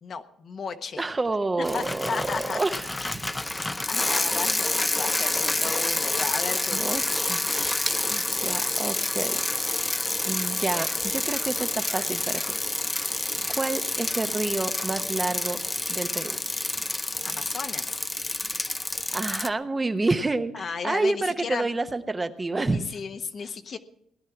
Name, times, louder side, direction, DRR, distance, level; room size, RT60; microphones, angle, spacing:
voice 1, 0.0-1.0 1.7-2.6 3.0-3.1 3.9-6.9 17.2-18.0 20.5-21.7 22.6-23.8, left 5 dB, 50° left, 7 dB, 1.1 m, -34 dB
voice 2, 1.0-3.2 6.7-7.8 8.1-9.4 10.2-12.4 13.0-15.6 15.9-16.4 19.1-22.8, right 2 dB, 25° right, 9 dB, 0.9 m, -29 dB
Bicycle, 1.6-19.5, left 2 dB, 15° left, 0.6 m, -28 dB
sound 1, 6.3-13.1, right 1 dB, 5° right, 1.4 m, -43 dB
17.5 x 11.0 x 5.9 m, 0.73 s
cardioid pair, 90°, 0 cm